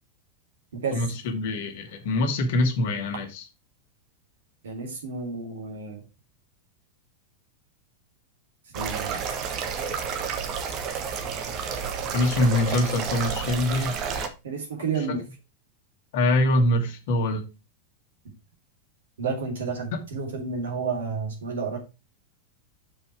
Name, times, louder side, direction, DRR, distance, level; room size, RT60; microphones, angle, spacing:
voice 1, 0.9-3.4 12.1-14.0 14.9-15.1 16.1-17.4 19.9-20.0, left 1 dB, 50° left, 1.5 m, -24 dB
voice 2, 4.6-6.0 8.7-9.2 14.4-15.2 19.2-21.8, right 5 dB, 65° right, 2.5 m, -31 dB
sound 1, 8.7-14.3, right 6 dB, 35° right, 1.3 m, -30 dB
6.3 x 5.5 x 4.6 m
figure-of-eight pair, 90°, 0 cm